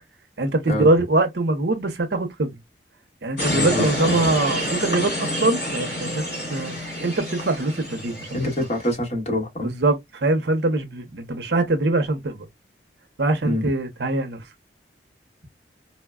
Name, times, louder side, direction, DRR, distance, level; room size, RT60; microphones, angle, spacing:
voice 1, 0.4-2.6 3.2-6.2 6.5-6.8 7.0-8.4 9.6-12.5 13.2-14.4, right 2 dB, 65° right, 0.7 m, -23 dB
sound 1, 3.4-8.9, equal, 55° left, 2.4 m, -28 dB
voice 2, 3.5-4.2 8.3-9.7 13.4-13.6, left 1 dB, 35° left, 1.5 m, -26 dB
4.1 x 2.1 x 2.2 m
head